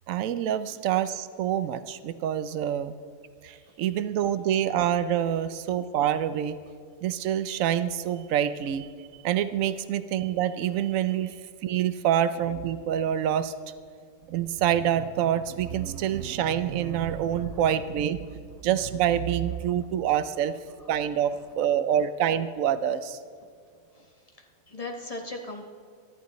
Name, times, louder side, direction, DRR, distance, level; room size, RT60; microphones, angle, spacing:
voice 1, 0.1-3.0 3.4-6.6 7.0-8.9 9.2-11.4 11.6-13.5 14.3-20.5 20.9-23.2, right 10 dB, 80° right, 12 dB, 1.0 m, -26 dB
voice 2, 24.4-25.6, left 2 dB, 30° left, 1 dB, 1.4 m, -38 dB
24.0 x 11.5 x 3.1 m, 2.2 s
omnidirectional pair, 1.4 m